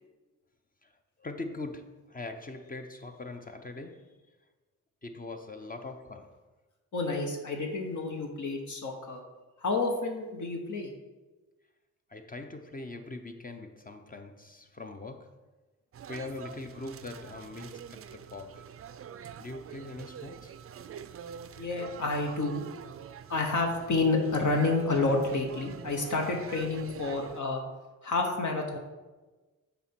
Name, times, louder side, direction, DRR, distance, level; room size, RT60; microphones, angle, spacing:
voice 1, 0.8-4.3 5.0-6.4 12.1-15.4 16.1-18.7 19.4-20.5, left 2 dB, 25° left, 0.7 m, -42 dB
voice 2, 6.9-9.2 9.6-10.9 21.6-22.6 23.3-27.6 28.0-28.8, left 3 dB, 65° left, 1.1 m, -29 dB
sound 1, 15.9-27.4, right 8 dB, 45° right, 0.4 m, -45 dB
6.9 x 4.3 x 4.5 m
cardioid pair, 60°, 33 cm